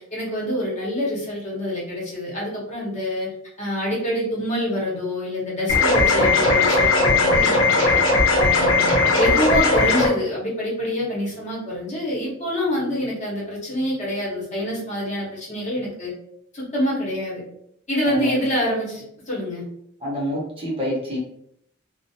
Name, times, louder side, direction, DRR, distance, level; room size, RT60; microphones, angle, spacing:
voice 1, 0.1-3.3 3.6-8.0 8.3-16.1 16.5-17.4 17.9-19.6, left 1 dB, 35° left, -5 dB, 0.9 m, -26 dB
sound 1, 5.7-10.1, left 3 dB, 65° left, 0.6 m, -18 dB
voice 2, 18.0-18.4 20.0-21.2, left 1 dB, 30° right, -4 dB, 0.8 m, -27 dB
2.4 x 2.1 x 2.7 m, 0.72 s
head